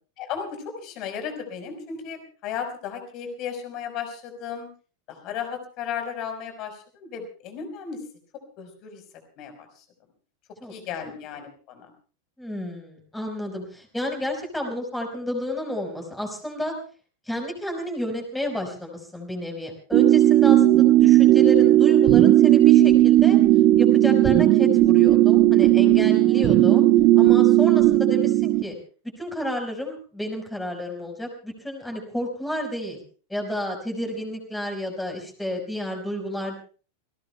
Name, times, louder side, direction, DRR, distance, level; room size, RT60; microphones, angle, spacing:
voice 1, 0.2-4.7 5.1-8.0 8.6-9.0 9.4-9.7 10.7-11.9 26.2-26.4, left 7 dB, 40° left, 6 dB, 4.8 m, -35 dB
voice 2, 12.4-16.8 17.2-23.4 23.8-26.8 27.1-28.8 29.2-33.0 33.3-36.6, left 1 dB, 5° left, 2 dB, 4.9 m, -31 dB
sound 1, 19.9-28.6, right 14 dB, 35° right, 1.6 m, -16 dB
29.0 x 18.0 x 2.3 m, 0.38 s
figure-of-eight pair, 90°, 0 cm